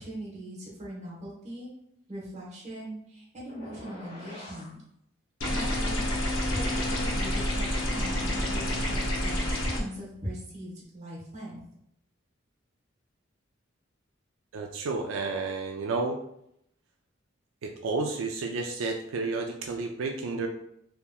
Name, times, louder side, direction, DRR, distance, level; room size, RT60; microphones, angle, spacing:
voice 1, 0.0-1.7 2.1-4.7 5.5-6.1 6.5-11.6, right 1 dB, 35° right, -5 dB, 1.1 m, -40 dB
sound 1, 3.5-4.7, left 1 dB, 30° left, 1.1 m, -44 dB
sound 2, 5.4-9.8, left 1 dB, 80° left, 0.7 m, -28 dB
voice 2, 14.5-16.2 17.6-20.5, right 3 dB, 90° right, 3 dB, 0.3 m, -31 dB
3.2 x 2.8 x 2.2 m, 0.74 s
head